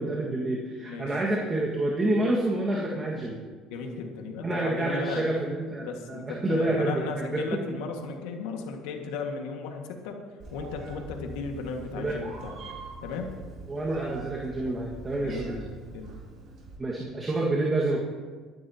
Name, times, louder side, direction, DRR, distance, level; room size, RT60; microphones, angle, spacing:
voice 1, 0.0-3.4 4.4-7.6 12.0-12.1 13.7-15.6 16.8-18.0, right 2 dB, 20° right, -3 dB, 1.8 m, -28 dB
voice 2, 3.7-5.3 5.8-10.2 10.5-12.6 13.0-13.3 15.2-15.6 15.9-16.2, left 5 dB, 85° left, 3 dB, 1.8 m, -35 dB
Meow, 10.4-16.8, right 3 dB, 50° right, 4.3 m, -43 dB
23.0 x 12.0 x 2.9 m, 1.5 s
cardioid pair, 115°, 0 cm